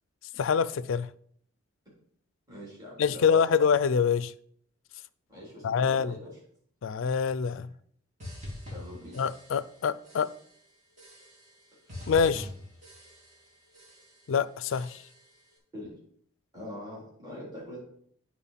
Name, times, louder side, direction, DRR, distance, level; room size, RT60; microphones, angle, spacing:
voice 1, 0.4-1.1 3.0-4.3 5.6-6.1 6.8-7.7 9.2-10.3 12.1-12.5 14.3-15.0, left 6 dB, 70° left, 0.4 m, -25 dB
voice 2, 2.5-3.3 5.3-6.3 8.7-9.2 11.8-11.9 15.7-16.0 16.5-17.8, left 1 dB, 20° right, 3.4 m, -43 dB
sound 1, 8.2-9.8 10.0-10.6 11.0-11.6 11.9-13.5 13.7-14.3 14.7-15.3, left 1 dB, 35° right, 2.4 m, -44 dB
8.8 x 4.3 x 5.6 m
head